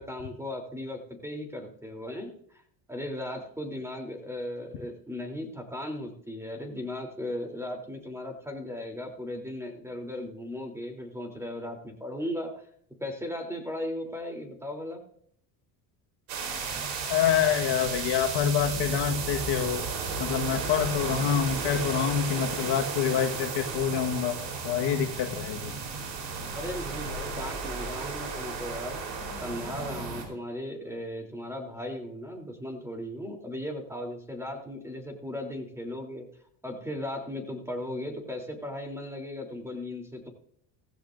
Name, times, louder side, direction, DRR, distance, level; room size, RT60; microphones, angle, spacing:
voice 1, 0.0-2.3 2.9-12.7 13.0-15.0 26.5-29.0 29.4-36.3 36.6-40.3, left 1 dB, 5° right, 3 dB, 3.5 m, -37 dB
sound 1, 16.3-30.2, right 4 dB, 85° right, 4.3 m, -34 dB
voice 2, 17.1-19.8 20.2-24.4 24.6-25.7, left 8 dB, 60° left, 3 dB, 1.7 m, -26 dB
16.5 x 15.5 x 2.7 m, 0.65 s
cardioid pair, 105°, 45 cm